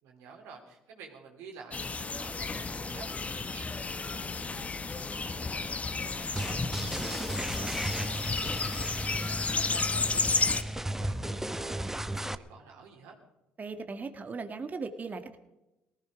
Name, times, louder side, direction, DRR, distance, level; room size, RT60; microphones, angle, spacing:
voice 1, 0.0-7.2 7.5-13.1, right 5 dB, 75° right, 1 dB, 3.4 m, -51 dB
sound 1, 1.7-10.6, left 4 dB, 30° left, 1.1 m, -32 dB
sound 2, 6.4-12.4, right 1 dB, 10° right, 0.9 m, -35 dB
voice 2, 13.6-15.4, right 4 dB, 35° right, 7 dB, 1.7 m, -38 dB
18.5 x 15.0 x 5.1 m, 0.94 s
hypercardioid pair, 60°, 5 cm